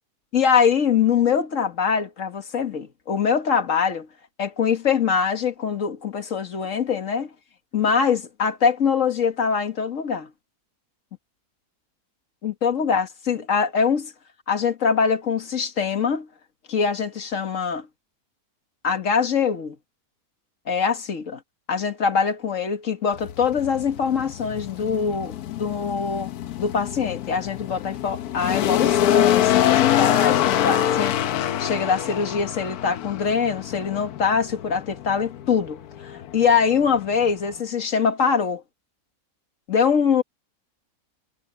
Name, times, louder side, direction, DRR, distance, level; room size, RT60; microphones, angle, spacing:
voice 1, 0.3-4.1 4.4-7.3 7.7-10.3 12.4-14.1 14.5-16.3 16.7-17.9 18.8-19.8 20.7-21.4 21.7-26.3 26.6-38.6 39.7-40.2, left 6 dB, 60° left, 2.0 m, -23 dB
sound 1, 23.1-37.6, left 11 dB, 80° left, 1.2 m, -25 dB
omnidirectional pair, 1.6 m